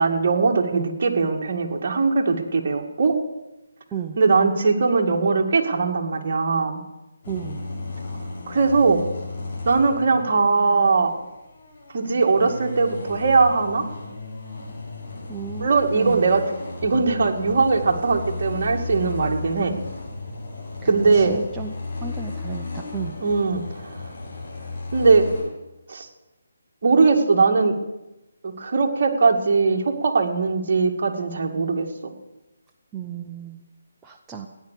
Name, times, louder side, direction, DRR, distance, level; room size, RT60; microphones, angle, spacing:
voice 1, 0.0-3.1 4.2-6.8 8.5-9.0 9.6-11.1 11.9-13.8 15.6-16.6 16.8-19.8 20.8-21.4 23.2-23.6 24.9-25.5 25.9-26.1 26.8-27.7 28.4-32.1, right 4 dB, 50° right, 2 dB, 2.3 m, -20 dB
sound 1, 7.2-25.4, left 3 dB, 40° left, 6.9 m, -34 dB
voice 2, 7.3-7.6 15.3-16.3 21.1-21.7 22.0-23.2 32.9-33.6 34.0-34.5, right 8 dB, 10° right, 1 dB, 0.8 m, -33 dB
15.5 x 10.5 x 8.5 m, 0.98 s
hypercardioid pair, 165°, 0 cm